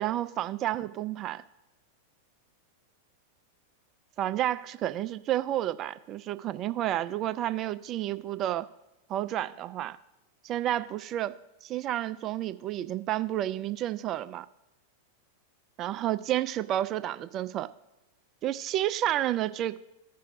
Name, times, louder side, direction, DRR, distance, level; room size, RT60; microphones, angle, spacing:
voice 1, 0.0-1.4 4.2-8.7 9.1-10.0 10.4-11.3 11.6-14.5 15.8-17.7 18.4-19.8, right 13 dB, 35° right, 13 dB, 0.4 m, -30 dB
16.0 x 5.6 x 2.6 m, 0.99 s
figure-of-eight pair, 95°, 0 cm